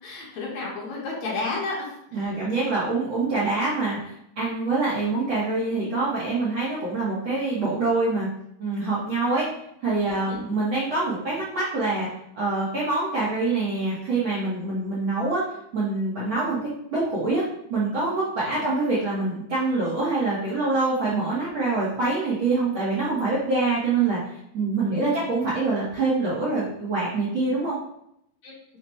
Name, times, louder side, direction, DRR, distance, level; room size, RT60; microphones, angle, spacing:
voice 1, 0.0-2.3 10.3-10.4 18.5-18.6 24.9-25.2 28.4-28.5, left 3 dB, 65° left, -4 dB, 2.1 m, -32 dB
voice 2, 2.1-8.3 8.6-9.5 9.8-12.1 12.3-15.4 15.7-16.6 16.9-24.2 24.5-27.8, right 3 dB, 70° right, -8 dB, 1.2 m, -25 dB
5.7 x 2.1 x 4.2 m, 0.75 s
omnidirectional pair, 3.6 m